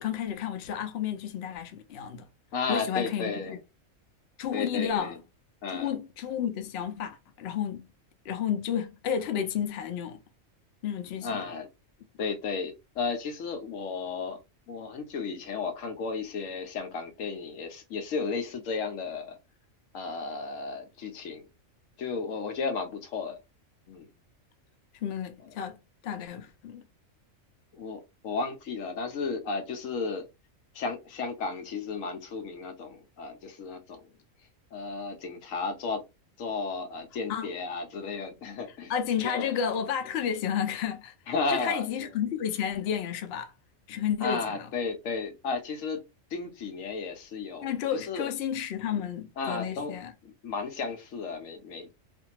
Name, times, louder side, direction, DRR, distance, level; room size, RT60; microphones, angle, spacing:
voice 1, 0.0-2.2 2.7-3.6 4.4-5.2 5.7-7.9 8.2-10.2 10.8-11.5 25.0-25.8 26.0-26.8 37.3-37.5 38.9-41.1 41.5-43.5 43.9-44.7 47.6-50.1, left 8 dB, 60° left, 0.7 m, -31 dB
voice 2, 2.5-3.6 4.5-5.2 5.6-5.9 11.2-11.7 12.2-14.4 14.7-19.4 19.9-21.5 22.0-23.4 23.9-24.1 27.7-30.3 30.7-34.0 34.7-36.0 36.4-38.9 39.2-39.5 41.3-42.1 44.2-48.3 48.9-49.0 49.4-50.0 50.2-52.0, left 4 dB, 80° left, 1.0 m, -34 dB
2.6 x 2.5 x 2.8 m
omnidirectional pair, 1.4 m